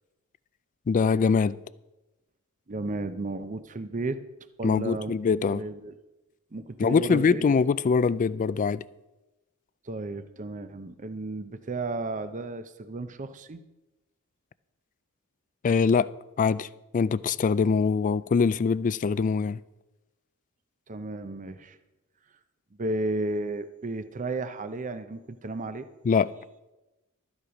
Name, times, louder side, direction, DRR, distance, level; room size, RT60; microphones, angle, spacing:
voice 1, 0.9-1.6 4.6-5.6 6.8-8.8 15.6-16.1 16.4-16.7 16.9-19.6 26.0-26.3, left 5 dB, 35° left, 0.3 m, -23 dB
voice 2, 2.7-4.2 4.6-5.1 5.5-5.9 6.5-7.4 9.9-13.6 20.9-21.8 22.8-25.9, right 2 dB, 35° right, 0.6 m, -33 dB
13.0 x 9.6 x 5.0 m
head